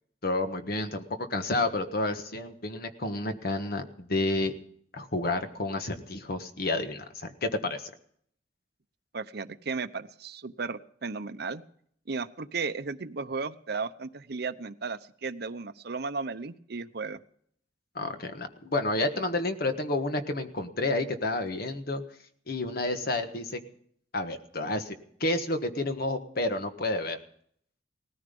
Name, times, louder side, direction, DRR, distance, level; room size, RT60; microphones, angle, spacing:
voice 1, 0.2-4.5 4.9-7.9 17.9-22.0 22.5-23.6 24.1-24.9 25.2-27.2, left 2 dB, 60° left, 7 dB, 1.5 m, -30 dB
voice 2, 9.1-11.6 12.1-17.2, right 4 dB, 65° right, 10 dB, 0.8 m, -35 dB
18.5 x 14.0 x 5.4 m, 0.64 s
head